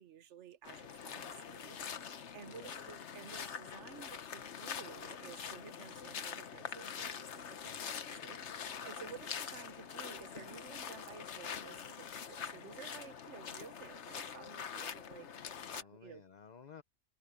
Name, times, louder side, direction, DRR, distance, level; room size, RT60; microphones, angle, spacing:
voice 1, 0.0-16.2, right 7 dB, 65° right, 1.3 m, -54 dB
sound 1, 0.6-15.8, left 7 dB, 65° left, 1.3 m, -44 dB
voice 2, 7.6-7.9 9.0-9.2 15.5-16.8, left 6 dB, 40° left, 0.8 m, -56 dB
omnidirectional pair, 1.3 m